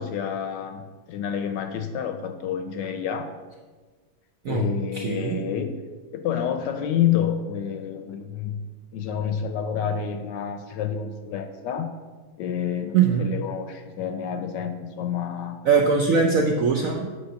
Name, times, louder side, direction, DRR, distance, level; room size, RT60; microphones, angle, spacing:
voice 1, 0.0-3.3 4.5-5.7 6.1-8.6 8.9-11.9 12.4-15.6 16.2-16.6, left 8 dB, 75° left, 7 dB, 1.1 m, -29 dB
voice 2, 5.0-5.4 12.9-13.3 15.7-17.2, right 5 dB, 70° right, 1 dB, 0.8 m, -21 dB
8.8 x 3.7 x 6.3 m, 1.4 s
omnidirectional pair, 2.2 m